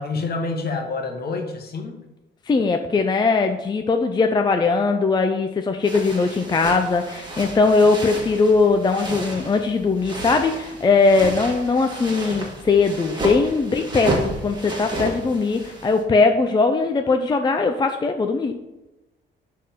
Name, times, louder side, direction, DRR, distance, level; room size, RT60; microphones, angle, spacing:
voice 1, 0.0-2.0, left 3 dB, 50° left, 4 dB, 1.3 m, -27 dB
voice 2, 2.5-18.6, left 4 dB, 20° left, 6 dB, 0.4 m, -20 dB
sound 1, 5.8-16.0, right 1 dB, 20° right, 1.6 m, -32 dB
5.3 x 3.6 x 5.8 m, 0.98 s
cardioid pair, 90°, 20 cm